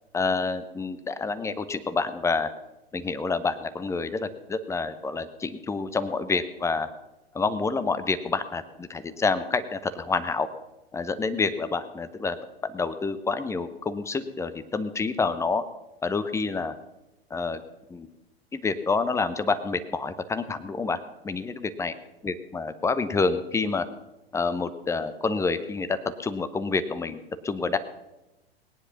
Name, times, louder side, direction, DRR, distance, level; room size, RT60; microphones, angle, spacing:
voice 1, 0.1-2.5 2.9-6.9 7.3-10.5 10.9-12.4 12.6-15.6 16.0-16.7 17.3-17.6 17.9-18.1 18.5-21.0 21.2-21.9 22.2-23.8 24.3-27.8, left 4 dB, 10° left, 12 dB, 0.7 m, -28 dB
18.5 x 9.9 x 5.8 m, 1.0 s
figure-of-eight pair, 95°, 31 cm